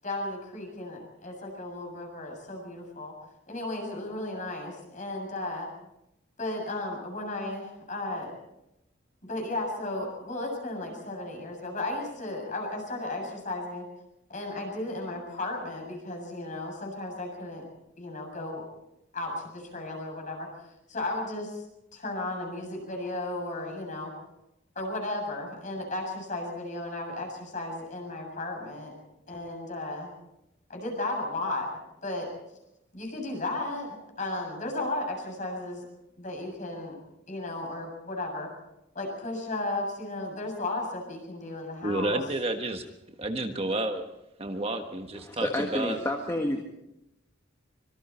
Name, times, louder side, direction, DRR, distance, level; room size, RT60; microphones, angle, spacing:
voice 1, 0.0-3.1 3.5-5.7 6.4-8.3 9.3-13.8 14.3-17.6 18.0-18.6 19.1-20.5 20.9-21.6 21.9-24.1 24.8-29.0 29.3-30.1 30.7-31.7 32.0-32.3 32.9-35.9 36.2-37.0 37.3-38.5 38.9-42.2, left 2 dB, 40° left, 1 dB, 7.4 m, -34 dB
voice 2, 41.8-42.8 43.2-44.0 44.4-46.0, right 2 dB, 30° right, 5 dB, 1.4 m, -30 dB
voice 3, 45.1-46.6, left 1 dB, 15° left, 2 dB, 1.6 m, -30 dB
25.0 x 23.5 x 4.4 m, 0.87 s
head